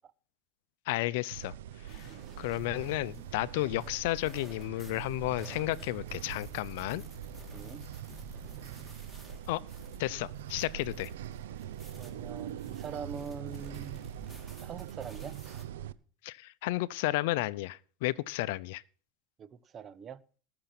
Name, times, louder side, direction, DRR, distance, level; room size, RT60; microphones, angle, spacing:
voice 1, 0.9-1.5 1.9-2.0 2.4-7.0 9.5-9.6 10.0-11.1 16.2-18.8, left 18 dB, 70° left, 0.6 m, -32 dB
sound 1, 1.3-15.9, right 11 dB, 85° right, 0.7 m, -43 dB
sound 2, 1.9-15.6, left 1 dB, 5° right, 3.8 m, -53 dB
voice 2, 7.5-7.8 12.0-14.1 14.6-15.3 19.4-20.2, right 6 dB, 30° right, 1.1 m, -43 dB
19.5 x 6.9 x 5.9 m
supercardioid pair, 115°, 0 cm